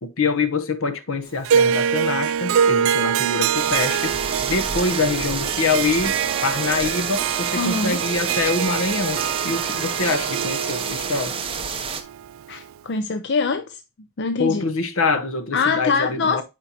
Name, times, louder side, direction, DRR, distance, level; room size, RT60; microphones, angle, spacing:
voice 1, 0.0-6.1 6.4-11.4 14.4-16.4, left 4 dB, 70° left, 0.9 m, -25 dB
Harp, 1.4-12.7, right 8 dB, 65° right, 0.3 m, -24 dB
sound 1, 3.5-12.0, right 5 dB, 25° right, 0.7 m, -29 dB
voice 2, 7.6-8.0 12.5-13.8 14.2-14.6 15.5-16.4, left 4 dB, 50° left, 0.5 m, -23 dB
8.9 x 4.3 x 2.8 m
head